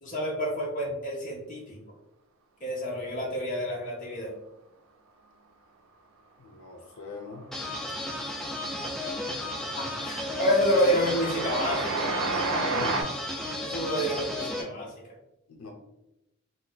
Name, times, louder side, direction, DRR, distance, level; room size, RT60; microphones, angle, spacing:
voice 1, 0.0-1.8 2.6-4.3 9.7-12.1 13.6-14.9, equal, 35° left, -2 dB, 0.8 m, -28 dB
voice 2, 6.4-7.5 12.7-13.0 15.5-15.7, left 3 dB, 80° left, 2 dB, 0.5 m, -41 dB
Train, 7.3-7.8 8.1-13.0, right 3 dB, 70° right, 0.4 m, -32 dB
sound 1, 7.5-14.6, left 1 dB, ahead, 0.3 m, -34 dB
2.6 x 2.1 x 3.8 m, 0.90 s
head